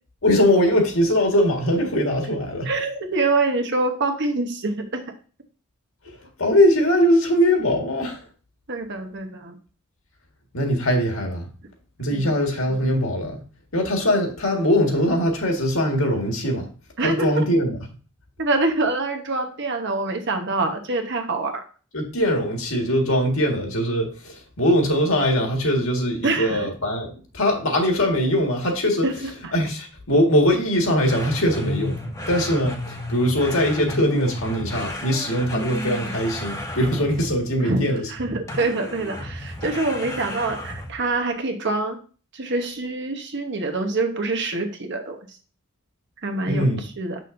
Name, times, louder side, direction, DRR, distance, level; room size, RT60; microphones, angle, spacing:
voice 1, 0.2-2.7 6.4-8.2 10.5-11.5 12.0-13.4 13.7-16.7 17.0-17.8 21.9-29.0 29.5-38.1 46.4-46.8, equal, 70° left, 2 dB, 1.7 m, -21 dB
voice 2, 2.6-5.0 8.7-9.5 12.1-12.4 17.0-17.3 18.4-21.6 26.2-26.7 29.0-29.5 37.6-37.8 38.1-42.0 42.3-45.4 46.2-46.7 47.0-47.2, right 3 dB, 55° right, 4 dB, 1.1 m, -25 dB
sound 1, 31.1-37.5 38.5-41.1, left 1 dB, 15° left, 0.9 m, -32 dB
6.9 x 6.3 x 2.6 m, 0.37 s
head